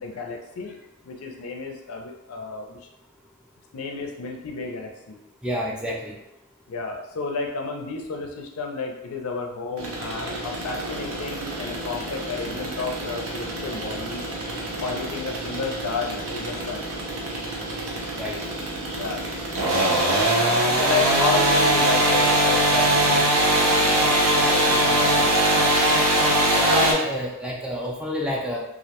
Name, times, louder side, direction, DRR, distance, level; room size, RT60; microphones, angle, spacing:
voice 1, 0.0-0.8 1.0-2.8 3.7-5.2 6.7-14.3 14.8-16.8 18.9-19.2 20.8-24.1 24.5-25.7, left 4 dB, 75° left, 2 dB, 0.4 m, -31 dB
voice 2, 5.4-6.2 18.2-18.4 18.8-19.0 26.6-28.6, left 1 dB, 5° right, -2 dB, 0.3 m, -28 dB
sound 1, 9.8-26.9, right 1 dB, 75° right, 0.6 m, -23 dB
2.4 x 2.1 x 2.8 m, 0.90 s
head